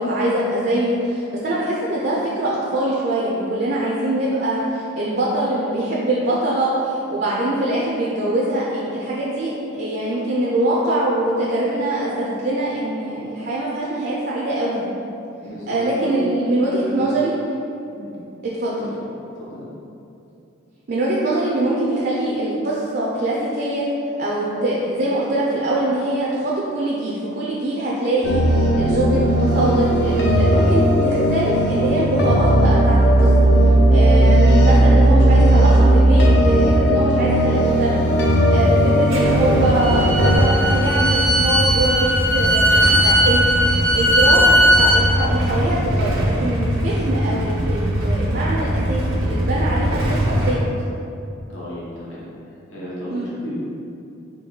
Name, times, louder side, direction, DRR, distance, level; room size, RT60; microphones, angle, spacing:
voice 1, 0.0-14.8 15.7-17.3 18.6-18.8 20.9-23.8 24.2-33.3 33.9-42.7 43.0-50.7 53.1-53.3, right 1 dB, 50° right, -5 dB, 0.4 m, -23 dB
voice 2, 15.4-16.3 16.8-17.1 18.0-18.1 18.8-18.9 19.4-19.6 51.5-52.2 52.7-53.5, equal, 75° left, -8 dB, 1.2 m, -34 dB
sound 1, 28.2-40.4, right 1 dB, 55° left, 0.6 m, -16 dB
Motorcycle / Engine starting / Idling, 39.1-50.5, equal, 90° right, 0.7 m, -22 dB
Bowed string instrument, 39.6-45.0, equal, 10° left, 0.6 m, -18 dB
3.6 x 3.0 x 3.9 m, 2.7 s
head